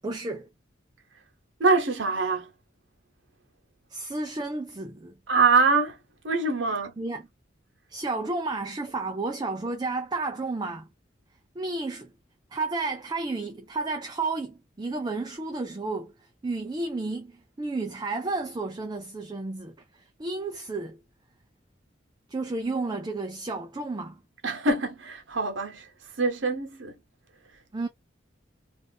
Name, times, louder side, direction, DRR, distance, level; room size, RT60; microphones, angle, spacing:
voice 1, 0.0-0.5 3.9-5.1 7.0-7.3 7.9-10.9 11.6-12.1 12.5-16.1 16.4-21.0 22.3-24.2 27.7-27.9, right 3 dB, 20° right, 0.4 m, -32 dB
voice 2, 1.6-2.5 5.3-6.0 6.2-6.9 24.4-25.9 26.2-27.0, right 3 dB, 80° right, 0.9 m, -24 dB
2.5 x 2.5 x 3.4 m
head